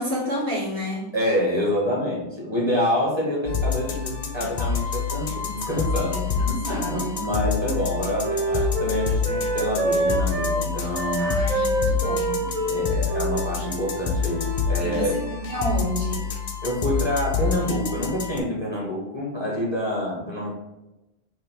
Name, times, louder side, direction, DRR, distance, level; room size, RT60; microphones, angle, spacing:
voice 1, 0.0-1.1 6.0-7.2 11.2-12.4 14.8-16.4, equal, 75° right, -6 dB, 1.9 m, -30 dB
voice 2, 1.1-6.2 6.4-11.3 12.4-15.1 16.6-20.5, left 1 dB, 25° right, -5 dB, 1.7 m, -27 dB
sound 1, 3.5-18.4, left 5 dB, 45° left, 0.6 m, -27 dB
Wind instrument woodwind instrument, 6.6-10.6 10.9-15.4, right 2 dB, 50° right, 0.5 m, -28 dB
3.3 x 3.2 x 4.7 m, 0.98 s
omnidirectional pair, 1.1 m